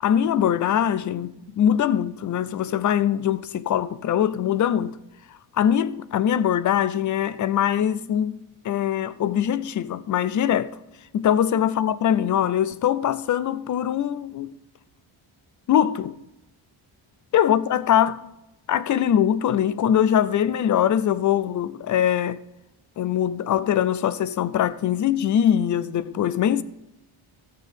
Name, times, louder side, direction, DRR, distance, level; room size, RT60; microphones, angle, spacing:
voice 1, 0.0-5.0 5.6-10.8 11.1-14.6 15.7-16.2 17.3-18.3 18.7-22.4 23.0-26.6, left 10 dB, 40° left, 0.4 m, -22 dB
15.0 x 6.6 x 5.3 m
wide cardioid pair, 170°, 50 cm